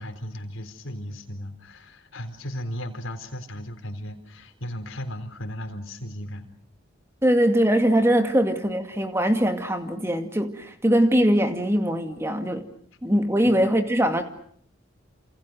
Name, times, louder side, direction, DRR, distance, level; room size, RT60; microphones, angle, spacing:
voice 1, 0.0-6.5 13.4-13.7, equal, 80° left, 4.1 m, -36 dB
voice 2, 7.2-12.7 13.0-14.2, equal, 15° right, 2.2 m, -21 dB
28.5 x 28.0 x 6.4 m
head